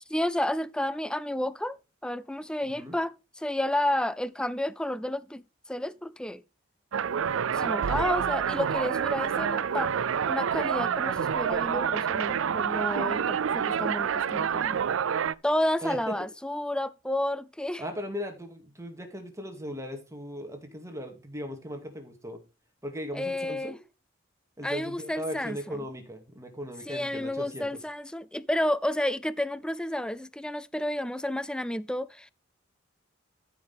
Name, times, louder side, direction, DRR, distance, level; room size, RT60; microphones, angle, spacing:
voice 1, 0.1-5.4 5.7-6.4 7.5-9.9 10.3-14.8 15.4-17.8 23.1-23.8 24.6-25.8 26.9-32.3, left 1 dB, 5° left, 0.4 m, -31 dB
sound 1, 6.9-15.3, right 7 dB, 90° right, 0.5 m, -28 dB
voice 2, 15.8-16.1 17.8-22.4 22.8-23.8 24.6-27.7, equal, 15° right, 2.2 m, -38 dB
14.0 x 5.9 x 3.5 m
head